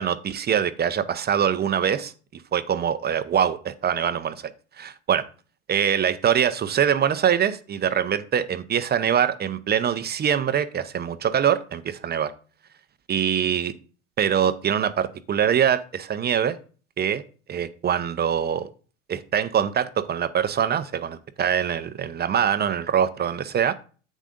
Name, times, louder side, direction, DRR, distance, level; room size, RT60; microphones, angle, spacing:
voice 1, 0.0-4.5 4.8-5.2 5.7-12.3 13.1-13.7 14.2-16.6 17.0-17.2 17.5-18.7 19.1-23.8, right 8 dB, 25° right, 0.7 m, -23 dB
10.0 x 8.2 x 2.6 m
hypercardioid pair, 85°, 38 cm